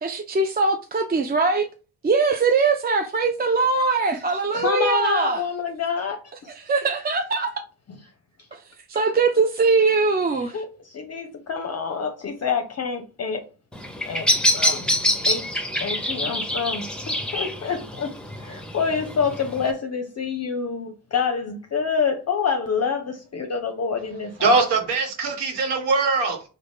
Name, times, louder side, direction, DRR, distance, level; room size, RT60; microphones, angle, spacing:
voice 1, 0.0-1.7 2.0-5.4 6.5-7.5 8.5-8.6 8.9-10.6, right 4 dB, 25° right, 0.4 m, -21 dB
voice 2, 4.5-6.2 10.5-13.5 14.0-14.8 15.3-15.5 15.8-18.1 18.4-24.5, left 5 dB, 40° left, 0.6 m, -27 dB
Bird vocalization bird call bird song, 13.7-19.7, left 1 dB, ahead, 0.8 m, -25 dB
voice 3, 24.4-26.4, right 4 dB, 75° right, 1.0 m, -21 dB
3.7 x 2.2 x 3.4 m
hypercardioid pair, 45°, 41 cm